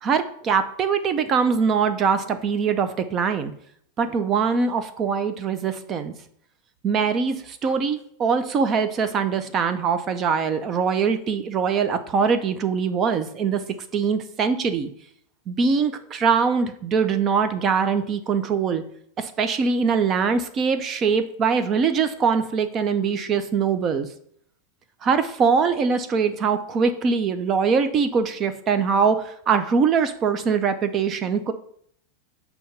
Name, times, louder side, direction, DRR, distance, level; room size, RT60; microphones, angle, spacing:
voice 1, 0.0-3.5 4.0-6.1 6.8-13.6 13.9-14.9 15.5-18.8 19.2-24.1 25.0-31.5, right 6 dB, 20° right, 10 dB, 0.5 m, -22 dB
6.9 x 2.8 x 5.7 m, 0.66 s
supercardioid pair, 170°, 0 cm